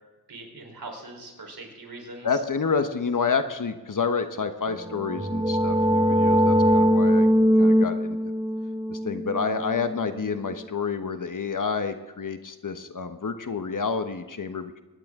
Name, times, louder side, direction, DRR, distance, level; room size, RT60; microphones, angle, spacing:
voice 1, 0.3-2.4, right 2 dB, 65° right, 1 dB, 4.3 m, -41 dB
voice 2, 2.2-7.3 7.6-8.2 8.9-14.8, left 5 dB, 55° left, 9 dB, 1.1 m, -29 dB
sound 1, 4.8-10.4, equal, 10° right, 0.8 m, -22 dB
24.0 x 10.5 x 3.7 m, 1.2 s
cardioid pair, 50°, 38 cm